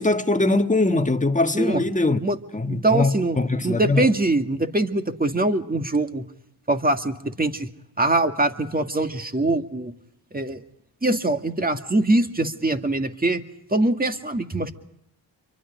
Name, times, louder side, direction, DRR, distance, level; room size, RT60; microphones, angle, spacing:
voice 1, 0.0-2.2 2.5-4.0, left 2 dB, 15° left, 1.5 m, -22 dB
voice 2, 2.7-3.4 3.6-6.2 6.7-7.7 8.0-9.9 10.3-10.6 11.0-13.4 13.7-14.7, right 2 dB, 20° right, 2.0 m, -23 dB
28.0 x 24.0 x 5.2 m
cardioid pair, 55°, 45 cm